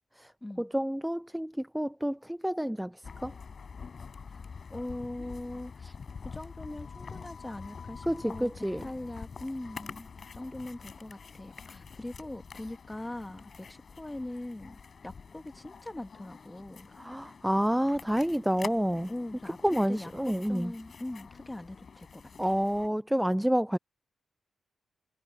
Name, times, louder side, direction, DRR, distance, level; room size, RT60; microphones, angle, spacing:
voice 1, 0.6-3.3 8.0-8.8 17.0-19.1 19.6-20.7 22.4-23.8, equal, 5° right, 0.3 m, -29 dB
sound 1, 3.0-22.9, left 5 dB, 55° left, 4.9 m, -46 dB
voice 2, 4.7-6.0 6.2-16.9 19.1-19.6 19.9-22.5, left 1 dB, 15° left, 2.2 m, -41 dB
cardioid pair, 65°, 0 cm